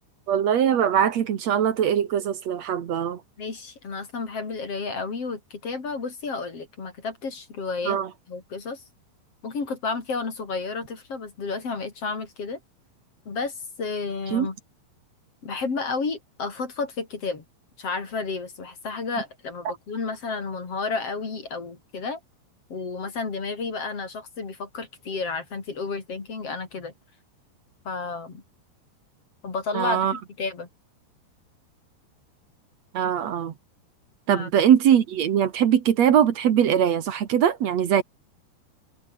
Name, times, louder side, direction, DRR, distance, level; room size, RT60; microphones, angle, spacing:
voice 1, 0.3-3.2 7.9-8.1 14.3-14.5 29.7-30.1 32.9-33.5 34.3-38.0, right 9 dB, 60° right, 1.8 m, -21 dB
voice 2, 3.4-8.0 8.3-8.8 9.4-12.6 13.3-14.6 15.4-17.4 17.8-22.2 22.7-26.9 27.8-28.4 29.4-30.7 34.3-34.5, left 4 dB, 35° left, 4.3 m, -31 dB
omnidirectional pair, 5.2 m